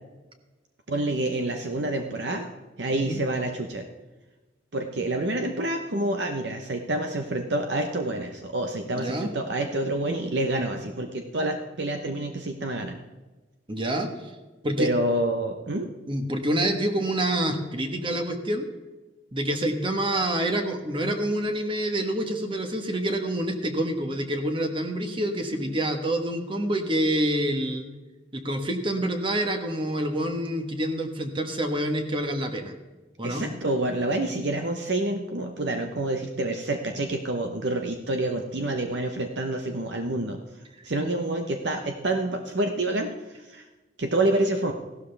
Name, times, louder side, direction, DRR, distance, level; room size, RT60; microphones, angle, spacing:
voice 1, 0.9-2.5 2.8-3.8 4.7-12.9 14.8-15.9 33.2-40.4 40.8-43.6 44.0-44.7, right 1 dB, 70° right, 4 dB, 1.0 m, -28 dB
voice 2, 8.9-9.3 13.7-14.1 14.6-14.9 16.1-18.7 19.3-27.9 28.3-32.7 33.2-33.4, right 1 dB, 30° right, 5 dB, 1.3 m, -27 dB
15.5 x 12.5 x 3.4 m, 1.2 s
head